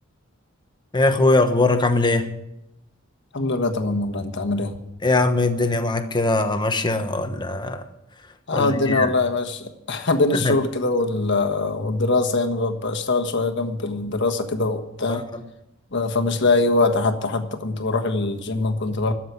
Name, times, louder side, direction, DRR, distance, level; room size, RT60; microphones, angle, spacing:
voice 1, 0.9-2.3 5.0-7.8 8.5-9.1 10.3-10.6 15.1-15.4, left 2 dB, 20° left, 1.1 m, -21 dB
voice 2, 3.3-4.8 8.5-15.2 15.9-19.1, left 3 dB, 60° left, 1.4 m, -23 dB
12.5 x 7.6 x 9.6 m
head